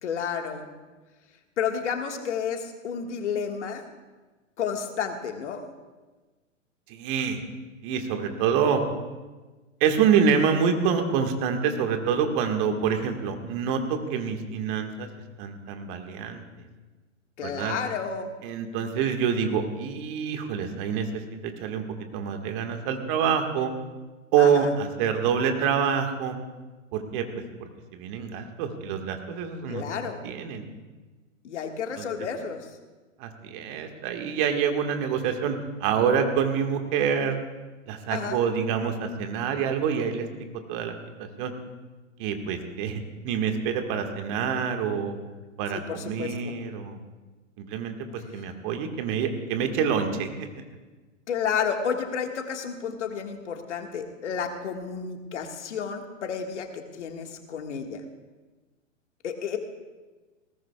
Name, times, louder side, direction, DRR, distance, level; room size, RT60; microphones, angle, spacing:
voice 1, 0.0-0.7 1.6-3.8 4.6-5.6 17.4-18.3 24.4-24.7 29.7-30.2 31.4-32.7 38.1-38.4 45.9-46.5 51.3-58.0 59.2-59.6, left 7 dB, 65° left, 4 dB, 1.8 m, -31 dB
voice 2, 6.9-7.4 7.8-8.8 9.8-15.1 15.4-16.4 17.4-17.7 18.4-21.8 22.1-23.7 24.3-26.4 26.9-27.3 27.6-29.8 30.2-30.7 32.0-32.1 33.2-37.4 37.9-40.3 40.7-41.5 42.2-45.1 45.6-47.0 47.6-48.0 48.3-50.5, right 7 dB, 40° right, 5 dB, 1.8 m, -26 dB
20.5 x 18.5 x 2.4 m, 1.3 s
figure-of-eight pair, 110°, 39 cm